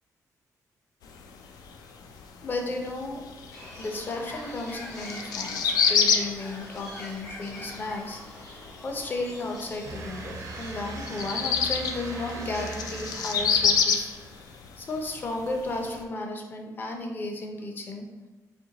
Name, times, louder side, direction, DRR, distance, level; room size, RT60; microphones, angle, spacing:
sound 1, 1.0-16.0, left 6 dB, 80° left, 0.4 m, -29 dB
voice 1, 2.4-3.2 3.8-14.1 14.8-18.1, left 2 dB, 30° left, 2 dB, 0.6 m, -34 dB
Bird, 3.5-13.1, left 1 dB, 55° left, 1.5 m, -44 dB
sound 2, 9.8-14.5, right 3 dB, 60° right, 0.5 m, -41 dB
4.3 x 2.9 x 3.8 m, 1.2 s
wide cardioid pair, 175°, 6 cm